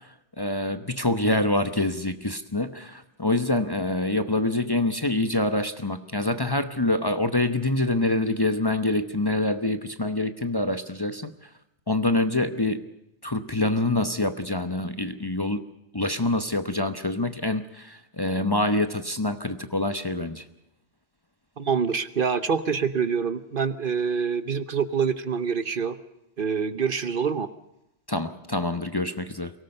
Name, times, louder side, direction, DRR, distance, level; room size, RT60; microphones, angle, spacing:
voice 1, 0.4-11.3 11.9-12.9 13.2-15.6 15.9-20.4 28.1-29.5, left 2 dB, 20° left, 9 dB, 0.9 m, -26 dB
voice 2, 21.6-26.0 26.4-27.5, right 6 dB, 55° right, 13 dB, 1.0 m, -26 dB
23.5 x 18.0 x 6.6 m, 0.86 s
omnidirectional pair, 1.2 m